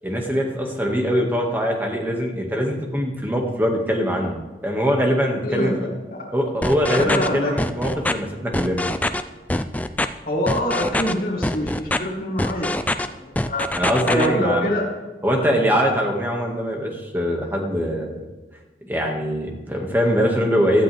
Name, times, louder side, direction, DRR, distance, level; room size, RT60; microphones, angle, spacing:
voice 1, 0.0-5.7 6.3-8.9 13.8-14.7 15.2-18.1 18.9-20.8, equal, 10° right, 0 dB, 2.0 m, -22 dB
sound 1, 6.6-7.3 7.6-8.1 8.5-9.2 9.5-10.1 10.5-11.1 11.4-12.0 12.4-13.1 13.4-14.3, left 1 dB, 10° left, 0.4 m, -23 dB
voice 2, 6.9-7.5 10.2-12.7 13.0-13.7 14.0-14.9, left 1 dB, 55° left, -5 dB, 3.1 m, -25 dB
17.5 x 12.5 x 3.6 m, 1.2 s
head